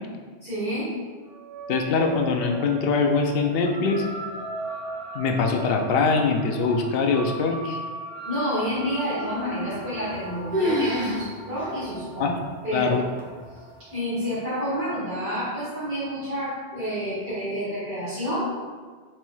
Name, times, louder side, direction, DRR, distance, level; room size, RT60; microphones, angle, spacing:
voice 1, 0.4-0.9 8.2-12.4 12.6-12.9 13.9-18.5, equal, 65° right, -13 dB, 1.8 m, -29 dB
sound 1, 1.3-16.0, right 2 dB, 45° right, 0.3 m, -38 dB
voice 2, 1.7-4.1 5.1-7.8 12.2-12.3 12.7-13.0, left 4 dB, 65° left, 3 dB, 0.7 m, -23 dB
sound 2, 9.7-10.2 10.5-11.2 11.6-11.7 12.4-12.5 13.2-13.6, left 1 dB, 15° left, 0.7 m, -26 dB
4.5 x 4.3 x 2.3 m, 1.5 s
omnidirectional pair, 1.1 m